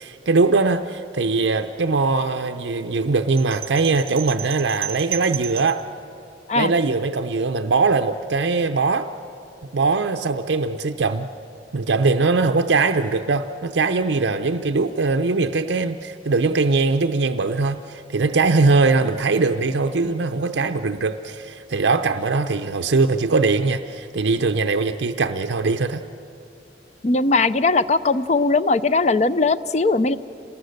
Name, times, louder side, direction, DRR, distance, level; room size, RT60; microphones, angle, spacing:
voice 1, 0.0-5.8 6.5-9.1 9.7-11.3 11.7-26.0, right 3 dB, 85° right, 7 dB, 0.6 m, -21 dB
sound 1, 3.4-5.8, right 10 dB, 35° right, 0.5 m, -33 dB
voice 2, 27.0-30.2, left 3 dB, 40° left, 14 dB, 0.5 m, -19 dB
27.5 x 20.0 x 6.5 m, 2.6 s
head